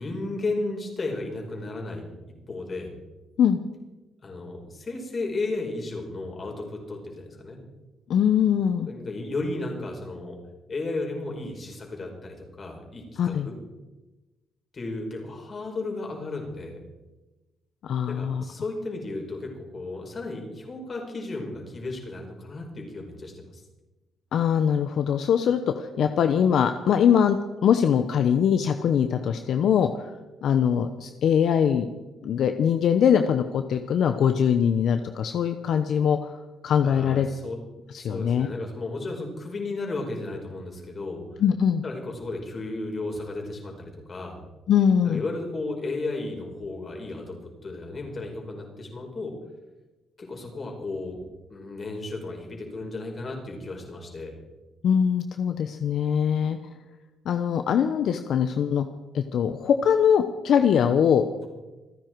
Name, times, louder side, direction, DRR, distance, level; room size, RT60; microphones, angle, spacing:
voice 1, 0.0-2.1 2.5-2.9 4.2-7.6 8.9-10.4 10.7-13.6 14.7-16.8 18.1-23.6 36.8-37.6 38.0-41.2 41.8-44.4 45.0-47.4 47.6-49.4 50.2-51.2 51.5-54.4, left 2 dB, 40° left, 1 dB, 5.2 m, -34 dB
voice 2, 8.1-8.9 13.2-13.5 17.8-18.4 24.3-30.1 30.4-31.9 32.2-36.3 36.6-37.3 37.9-38.5 41.4-41.8 44.7-45.2 54.8-56.6 57.2-58.8 59.1-61.2, left 8 dB, 70° left, 8 dB, 0.9 m, -22 dB
27.5 x 10.0 x 4.7 m, 1.1 s
cardioid pair, 90°, 0 cm